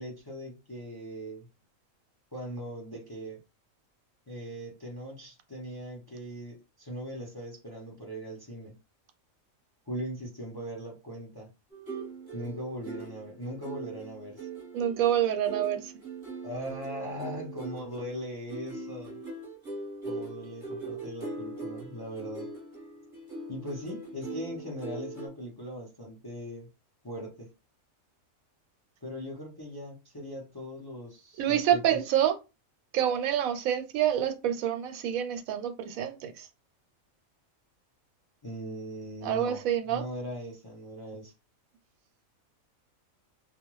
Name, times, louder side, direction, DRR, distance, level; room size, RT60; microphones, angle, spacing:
voice 1, 0.0-1.5 2.3-3.4 4.3-8.8 9.9-11.5 12.3-14.5 16.4-19.2 20.0-22.5 23.5-26.7 27.0-27.5 29.0-32.0 38.4-39.6 39.9-41.3, equal, 30° left, 0.5 m, -39 dB
sound 1, 11.7-25.3, right 3 dB, 20° right, 1.0 m, -41 dB
voice 2, 14.7-15.9 31.4-32.3 32.9-36.5 39.2-40.0, right 10 dB, 90° right, 1.0 m, -27 dB
2.3 x 2.2 x 3.0 m
omnidirectional pair, 1.4 m